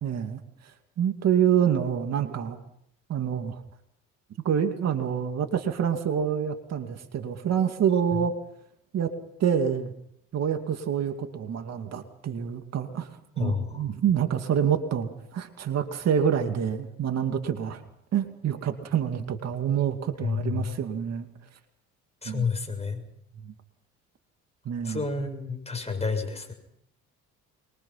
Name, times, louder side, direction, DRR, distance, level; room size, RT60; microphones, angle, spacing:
voice 1, 0.0-0.4 1.0-2.6 3.1-3.6 4.4-8.3 8.9-9.1 9.4-9.9 10.3-17.8 18.1-21.3 22.3-22.4 23.4-23.5 24.7-25.0, right 8 dB, 55° right, 6 dB, 2.4 m, -27 dB
voice 2, 13.4-13.8 20.2-20.8 22.2-23.0 24.8-26.5, left 5 dB, 20° left, 5 dB, 6.7 m, -30 dB
24.5 x 23.0 x 5.8 m, 0.74 s
cardioid pair, 90°, 30 cm